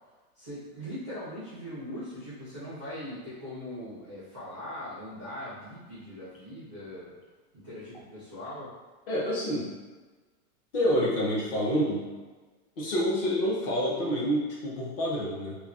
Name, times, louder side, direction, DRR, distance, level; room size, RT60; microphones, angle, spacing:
voice 1, 0.3-7.1 7.5-8.7, left 1 dB, 20° right, -12 dB, 0.3 m, -40 dB
voice 2, 9.1-9.7 10.7-12.1 12.8-15.5, equal, 40° left, -4 dB, 0.6 m, -27 dB
2.3 x 2.0 x 3.4 m, 1.3 s
supercardioid pair, 170°, 46 cm